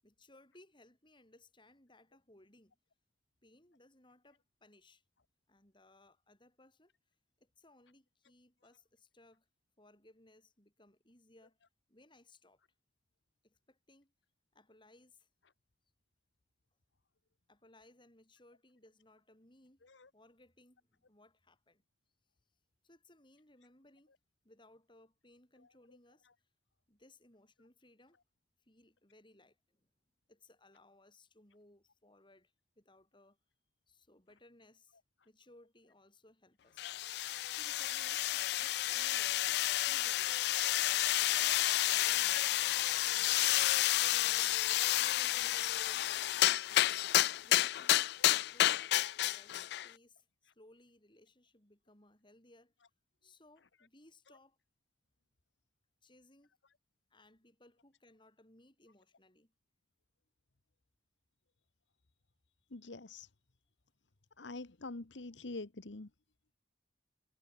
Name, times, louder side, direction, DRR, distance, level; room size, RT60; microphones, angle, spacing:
voice 1, 0.0-2.8 3.4-5.0 5.5-6.9 7.4-9.5 9.8-11.6 11.9-12.6 13.4-14.1 14.5-15.3 17.5-19.8 20.1-21.8 22.8-24.1 24.4-26.3 26.9-28.2 28.6-29.9 30.3-33.4 33.9-35.0 35.3-36.9 37.5-39.5 39.9-40.4 40.9-42.6 44.0-46.1 46.7-47.0 47.4-48.0 48.5-52.7 53.2-54.6 56.0-56.5 57.1-59.5, left 2 dB, 25° left, 7.2 m, -63 dB
sound 1, 36.8-49.9, left 15 dB, 65° left, 0.3 m, -30 dB
voice 2, 62.7-63.3 64.4-66.1, left 2 dB, 90° left, 1.3 m, -45 dB
head